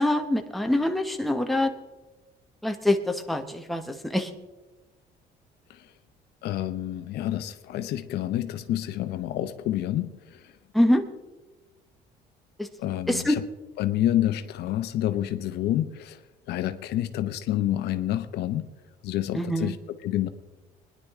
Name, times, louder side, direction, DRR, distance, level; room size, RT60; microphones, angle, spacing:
voice 1, 0.0-1.7 2.6-4.3 10.7-11.0 12.6-12.7 13.1-13.4 19.3-19.8, left 1 dB, ahead, 1.0 m, -24 dB
voice 2, 6.4-10.5 12.8-13.4 13.8-16.2 16.5-18.7 19.0-19.8 20.0-20.3, left 13 dB, 75° left, 0.8 m, -28 dB
21.0 x 10.5 x 3.7 m
cardioid pair, 110°, 17 cm